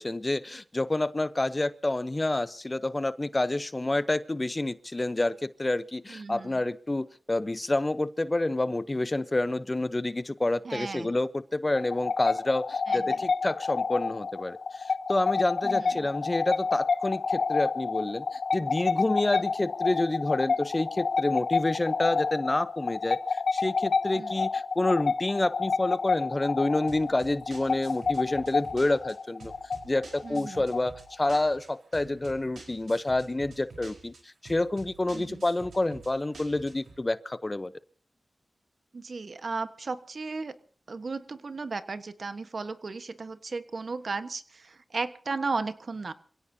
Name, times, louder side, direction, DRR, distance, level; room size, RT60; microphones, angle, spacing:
voice 1, 0.0-29.5 29.8-37.7, left 2 dB, 30° left, 14 dB, 0.8 m, -28 dB
voice 2, 6.1-6.6 10.6-11.2 12.9-13.2 15.6-16.1 19.3-19.5 24.1-24.4 30.2-30.6 35.1-35.4 38.9-40.6 40.9-46.1, right 4 dB, 65° right, 11 dB, 1.3 m, -35 dB
sound 1, 11.8-31.1, left 4 dB, 80° left, 0.8 m, -29 dB
sound 2, 26.9-37.0, right 4 dB, 90° right, 4.7 m, -49 dB
27.0 x 17.0 x 2.8 m, 0.42 s
cardioid pair, 60°, 0 cm